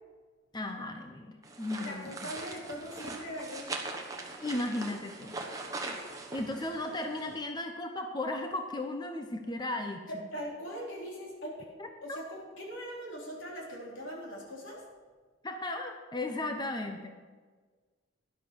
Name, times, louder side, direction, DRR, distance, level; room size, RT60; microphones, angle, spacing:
voice 1, 0.5-2.1 4.4-5.4 6.3-10.3 11.8-12.2 15.4-17.1, left 2 dB, 20° left, 4 dB, 0.8 m, -36 dB
sound 1, 1.4-7.4, right 3 dB, 15° right, 1.2 m, -41 dB
voice 2, 1.8-3.7 10.1-11.7 12.0-14.9, equal, 75° left, -3 dB, 3.7 m, -41 dB
12.5 x 11.0 x 4.7 m, 1.4 s
head